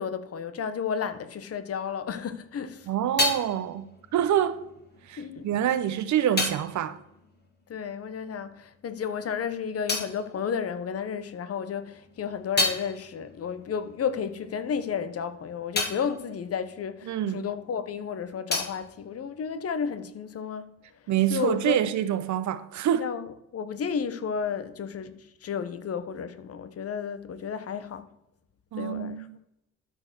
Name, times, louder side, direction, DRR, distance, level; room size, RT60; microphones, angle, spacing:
voice 1, 0.0-2.9 5.2-5.5 7.7-20.7 21.3-21.8 23.0-28.1 28.8-29.2, left 7 dB, 50° left, 1.1 m, -32 dB
sound 1, 2.4-8.4 8.6-11.3 11.7-17.8 18.0-20.0, left 2 dB, 35° left, 2.5 m, -34 dB
voice 2, 2.9-4.6 5.1-7.0 17.1-17.5 21.1-23.2 28.7-29.4, right 10 dB, 70° right, 0.8 m, -26 dB
12.5 x 4.6 x 6.2 m
cardioid pair, 90°, 30 cm